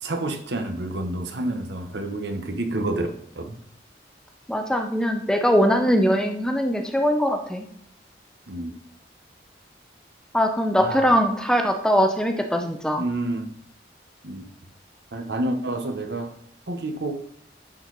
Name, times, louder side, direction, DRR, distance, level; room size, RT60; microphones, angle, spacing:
voice 1, 0.0-3.1 3.4-3.6 8.5-8.7 10.8-11.1 13.0-13.5 14.2-14.4 15.1-16.3 16.7-17.2, right 2 dB, 70° right, 6 dB, 1.0 m, -29 dB
voice 2, 4.5-7.7 10.3-13.0, equal, 5° left, 4 dB, 0.6 m, -21 dB
11.0 x 4.4 x 4.0 m, 0.66 s
head